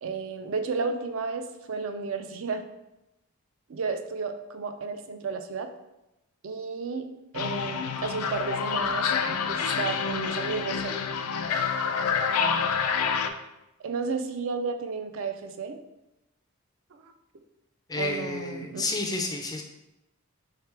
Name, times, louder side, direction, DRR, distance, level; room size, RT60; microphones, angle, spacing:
voice 1, 0.0-2.6 3.7-5.7 6.4-7.1 7.3-11.0 12.3-12.7 13.8-15.8 16.9-17.1 17.9-18.9, right 4 dB, 65° right, 8 dB, 0.4 m, -33 dB
sound 1, 7.3-13.3, left 6 dB, 90° left, 0.4 m, -28 dB
voice 2, 17.9-19.6, left 3 dB, 15° left, 3 dB, 0.3 m, -30 dB
3.3 x 3.3 x 4.5 m, 0.93 s
head